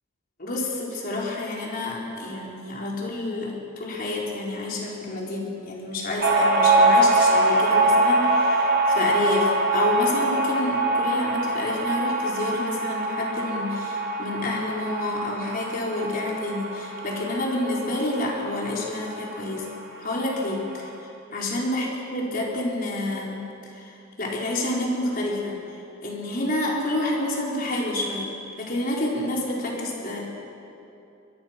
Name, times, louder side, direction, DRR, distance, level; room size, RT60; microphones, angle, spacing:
voice 1, 0.4-19.7 20.0-20.9 21.3-23.4 23.8-23.9 24.2-25.6 26.0-30.2, left 1 dB, 45° left, -3 dB, 4.5 m, -28 dB
sound 1, 6.2-19.3 19.6-19.7 20.0-20.7, right 2 dB, 55° right, 4.6 m, -23 dB
23.0 x 22.5 x 6.0 m, 2.8 s
head